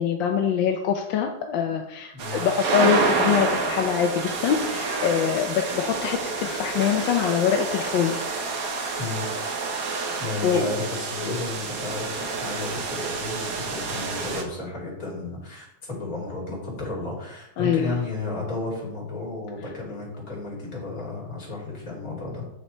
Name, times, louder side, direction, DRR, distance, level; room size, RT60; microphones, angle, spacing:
voice 1, 0.0-8.4 10.4-10.7 17.6-18.0, left 8 dB, 85° left, 4 dB, 1.4 m, -24 dB
sound 1, 2.2-14.4, right 4 dB, 55° right, 1.4 m, -28 dB
voice 2, 10.2-22.5, left 3 dB, 50° left, -5 dB, 3.3 m, -33 dB
8.0 x 6.1 x 4.3 m, 0.88 s
omnidirectional pair, 2.0 m